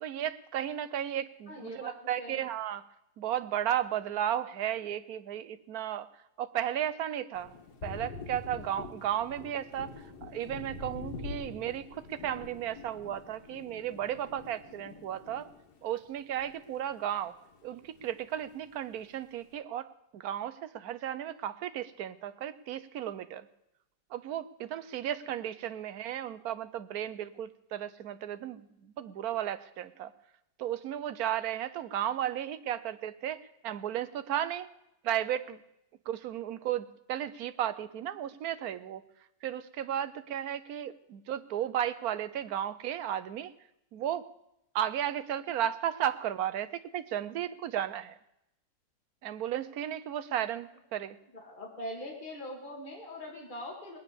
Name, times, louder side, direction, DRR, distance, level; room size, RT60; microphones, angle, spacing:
voice 1, 0.0-2.8 3.2-6.1 6.4-7.5 7.8-9.9 10.2-15.5 15.8-17.4 17.6-19.9 20.1-23.5 24.1-30.1 30.6-34.7 35.0-35.6 36.1-39.0 39.4-43.5 43.9-44.3 44.7-48.2 49.2-51.2, right 11 dB, 70° right, 12 dB, 1.2 m, -34 dB
voice 2, 1.5-2.4 51.3-54.0, equal, 30° left, -1 dB, 2.4 m, -42 dB
Thunder, 7.3-17.1 17.4-18.6, left 4 dB, 90° left, 2.0 m, -46 dB
19.5 x 9.3 x 6.9 m, 0.84 s
omnidirectional pair, 1.7 m